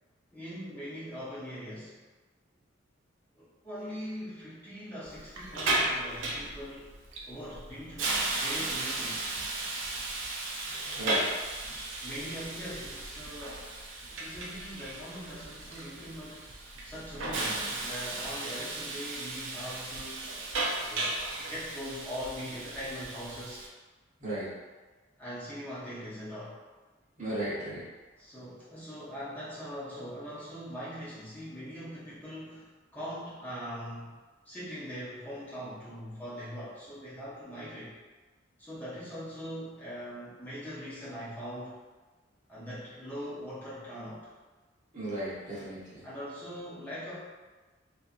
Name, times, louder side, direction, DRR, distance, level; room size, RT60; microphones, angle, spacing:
voice 1, 0.3-2.0 3.3-6.9 7.3-9.3 12.0-16.5 16.8-20.3 20.8-23.7 25.2-26.6 28.2-34.2 34.4-38.0 38.6-41.8 42.5-44.3 46.0-47.2, equal, 10° left, -11 dB, 0.7 m, -41 dB
Hiss, 5.1-23.7, right 2 dB, 85° right, 0.5 m, -35 dB
voice 2, 10.9-11.3 24.2-24.5 27.2-27.8 44.9-46.0, right 1 dB, 40° right, -9 dB, 1.0 m, -35 dB
2.6 x 2.5 x 2.5 m, 1.3 s
head